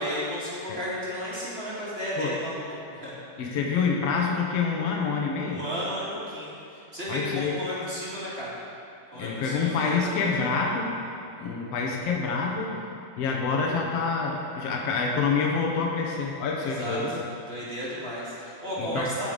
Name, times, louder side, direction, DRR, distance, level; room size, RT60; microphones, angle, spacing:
voice 1, 0.0-2.6 2.9-3.1 5.4-8.5 9.1-10.3 16.6-17.2 17.5-19.3, equal, 25° right, -8 dB, 1.3 m, -33 dB
voice 2, 3.4-5.6 7.1-7.6 9.1-10.9 11.4-12.7 13.2-17.2 18.8-19.1, left 5 dB, 85° left, -1 dB, 1.4 m, -27 dB
14.5 x 5.7 x 5.1 m, 2.8 s
omnidirectional pair, 4.2 m